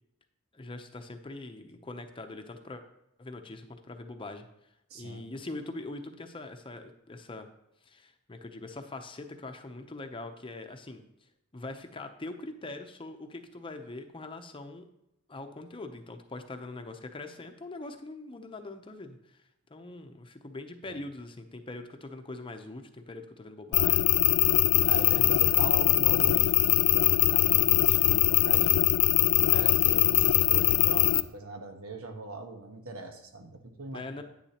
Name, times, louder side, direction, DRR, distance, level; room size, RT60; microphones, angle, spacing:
voice 1, 0.5-2.8 3.2-4.5 4.9-7.5 7.8-11.1 11.5-14.8 15.3-19.4 19.7-24.1 24.8-25.1 29.5-29.9 33.9-34.2, left 2 dB, 25° left, 7 dB, 0.7 m, -42 dB
voice 2, 4.9-5.2 20.9-21.0 24.9-28.9 29.3-34.2, right 2 dB, 85° right, 5 dB, 1.2 m, -40 dB
sound 1, 23.7-31.2, left 16 dB, 85° left, 0.4 m, -22 dB
10.0 x 9.3 x 2.9 m, 0.82 s
head